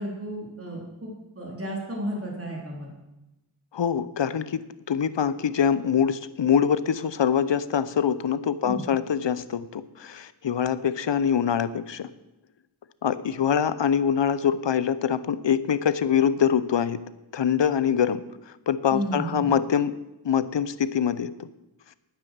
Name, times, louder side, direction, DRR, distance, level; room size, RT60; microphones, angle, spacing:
voice 1, 0.0-2.9 8.6-8.8 18.9-19.5, right 1 dB, 30° right, -2 dB, 3.7 m, -33 dB
voice 2, 3.7-12.1 13.0-17.0 17.3-18.2 18.7-19.9 20.2-21.5, left 8 dB, 60° left, 15 dB, 0.8 m, -24 dB
9.9 x 9.6 x 7.5 m, 0.97 s
wide cardioid pair, 65°, 48 cm